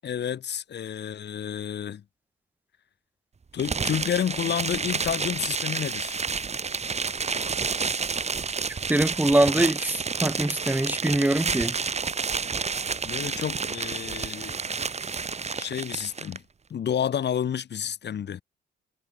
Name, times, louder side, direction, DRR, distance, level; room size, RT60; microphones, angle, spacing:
voice 1, 0.0-2.0 3.5-6.2 13.0-14.6 15.5-16.4 16.7-18.4, left 9 dB, 60° left, 6.9 m, -30 dB
sound 1, 3.6-16.4, right 5 dB, 35° right, 2.8 m, -30 dB
voice 2, 8.9-11.8, right 1 dB, 10° right, 2.8 m, -23 dB
cardioid pair, 90°, 20 cm